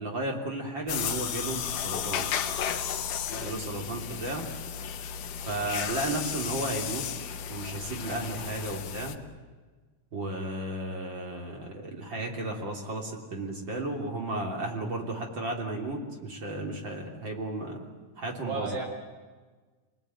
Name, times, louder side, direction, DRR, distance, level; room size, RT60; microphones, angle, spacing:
voice 1, 0.0-2.3 3.4-4.5 5.5-7.1 7.5-9.2 10.1-17.9 18.2-18.8, right 2 dB, 35° right, 1 dB, 3.5 m, -34 dB
sound 1, 0.9-9.2, left 8 dB, 80° left, 2.8 m, -34 dB
voice 2, 18.4-18.8, right 4 dB, 90° right, 2 dB, 6.6 m, -35 dB
28.5 x 19.5 x 9.4 m, 1.4 s
omnidirectional pair, 3.7 m